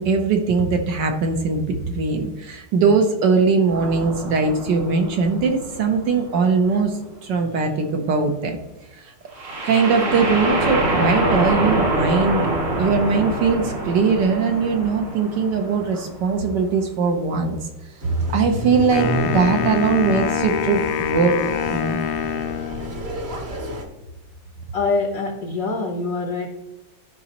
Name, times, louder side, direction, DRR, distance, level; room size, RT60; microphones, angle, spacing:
voice 1, 0.0-8.6 8.9-9.1 9.6-12.4 12.8-17.6 18.0-22.0, right 4 dB, 65° right, 4 dB, 1.2 m, -20 dB
sound 1, 3.7-6.5 9.3-16.2, right 1 dB, 85° right, 3.5 m, -25 dB
sound 2, 18.0-23.8, right 1 dB, 40° right, 1.0 m, -31 dB
Wind instrument woodwind instrument, 18.9-23.2, left 8 dB, 75° left, 1.4 m, -25 dB
voice 2, 24.7-26.5, left 3 dB, 60° left, 3 dB, 0.9 m, -24 dB
12.0 x 5.0 x 2.9 m, 1.1 s
omnidirectional pair, 2.3 m